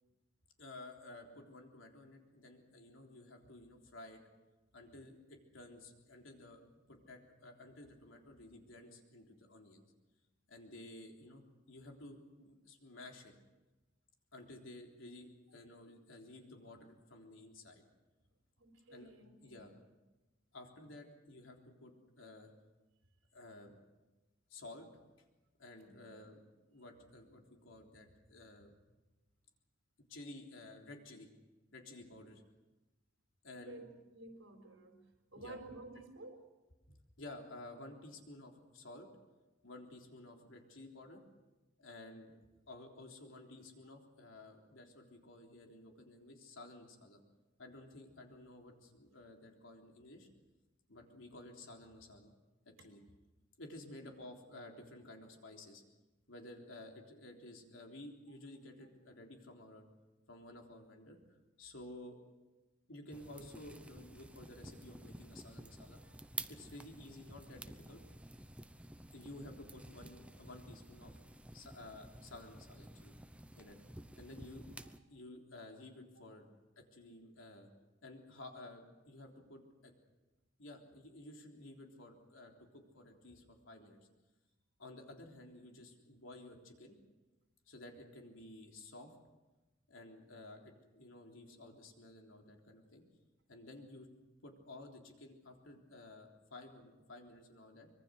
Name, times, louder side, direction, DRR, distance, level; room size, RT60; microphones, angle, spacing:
voice 1, 0.6-4.2 4.7-6.6 6.9-9.8 10.5-13.3 14.3-17.8 18.9-19.1 19.4-19.7 20.5-22.5 23.3-23.8 24.5-24.9 25.6-26.4 26.7-28.7 30.1-31.3 31.7-32.4 33.4-33.8 35.3-35.6 36.9-39.1 39.6-41.2 41.8-42.4 42.7-47.2 47.6-50.3 50.9-52.3 52.8-53.0 53.6-55.8 56.3-59.9 60.3-61.2 61.6-62.2 62.9-66.0 66.5-68.0 69.1-71.1 71.5-73.1 73.6-73.8 74.2-74.7 75.1-76.5 76.8-77.7 78.0-79.9 80.6-84.1 84.8-87.0 87.7-89.1 89.9-93.0 93.5-94.1 94.4-97.9, left 2 dB, 85° left, 2 dB, 3.7 m, -53 dB
voice 2, 18.6-19.7 25.8-26.3 33.6-33.9 34.1-35.0 35.3-36.4 41.1-41.2 58.3-58.4 65.6-66.5 74.8-74.9 75.6-75.7 76.2-76.3, right 2 dB, 75° right, 5 dB, 4.3 m, -53 dB
sound 1, 63.1-75.0, right 1 dB, 5° right, 0.8 m, -51 dB
24.5 x 22.5 x 6.5 m, 1.1 s
head